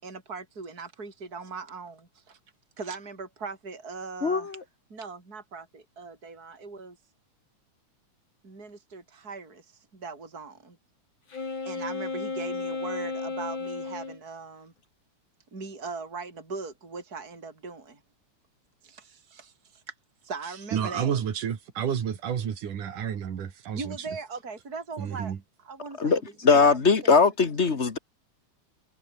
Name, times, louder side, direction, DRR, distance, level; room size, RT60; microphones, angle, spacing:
voice 1, 0.0-2.4 2.8-4.6 4.9-7.0 8.4-9.7 9.9-10.8 11.7-14.7 15.5-18.0 18.8-19.9 20.2-21.2 23.7-27.3, right 4 dB, 25° right, 5.6 m, -40 dB
voice 2, 4.2-4.6 26.0-28.0, left 4 dB, 30° left, 1.5 m, -21 dB
Wind instrument woodwind instrument, 11.3-14.2, left 4 dB, 70° left, 8.0 m, -33 dB
voice 3, 20.7-24.0 25.0-25.4, right 8 dB, 75° right, 3.9 m, -30 dB
omnidirectional pair, 3.6 m